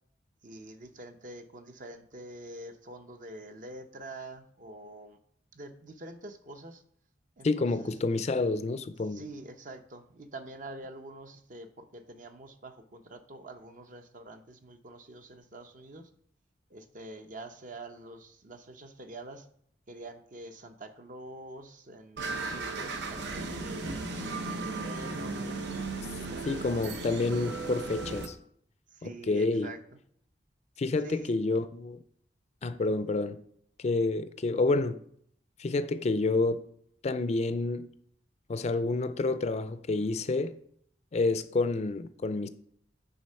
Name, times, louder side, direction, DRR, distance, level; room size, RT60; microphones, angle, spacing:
voice 1, 0.4-5.2 5.5-6.8 7.4-8.2 9.1-16.1 16.7-19.5 19.9-23.9 24.5-25.8 26.2-27.0 28.9-29.8 31.0-31.4, right 2 dB, 50° right, 0.7 m, -46 dB
voice 2, 7.4-9.2 26.5-28.3 29.0-29.7 30.8-32.0 32.6-33.4 33.8-35.0 35.6-36.7 37.0-37.9 38.5-40.5 41.1-42.5, left 3 dB, 40° left, 0.4 m, -29 dB
sound 1, 22.2-28.3, right 3 dB, 85° right, 0.9 m, -36 dB
9.3 x 3.7 x 5.5 m
head